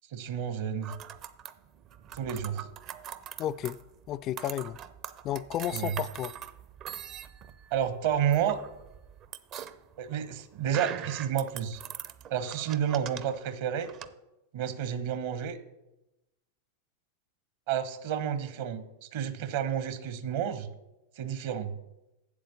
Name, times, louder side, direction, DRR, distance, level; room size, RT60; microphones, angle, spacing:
voice 1, 0.1-0.9 2.1-2.7 5.7-5.9 7.7-8.6 10.0-11.8 12.3-13.9 14.5-15.6 17.7-18.8 19.1-20.7 21.2-21.7, right 9 dB, 50° right, 1.0 m, -30 dB
sound 1, 0.8-14.1, right 9 dB, 35° right, 0.6 m, -42 dB
voice 2, 3.4-3.8 4.1-4.8 5.2-6.3, left 11 dB, 35° left, 0.3 m, -32 dB
8.4 x 7.8 x 7.0 m
figure-of-eight pair, 90°, 0 cm